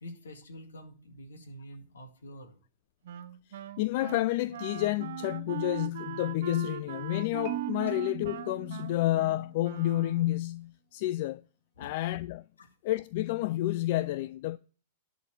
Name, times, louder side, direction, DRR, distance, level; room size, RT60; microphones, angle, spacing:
voice 1, 0.0-2.5 7.9-8.0 11.8-11.9 12.6-12.7, equal, 80° left, 2.0 m, -47 dB
Wind instrument woodwind instrument, 3.1-10.5, right 10 dB, 65° right, 0.7 m, -41 dB
voice 2, 3.8-11.4 11.8-12.5 12.8-14.6, left 16 dB, 50° left, 0.3 m, -30 dB
Marimba xylophone, 7.4-9.6, right 14 dB, 45° right, 1.0 m, -40 dB
11.0 x 4.1 x 7.3 m
hypercardioid pair, 110°, 0 cm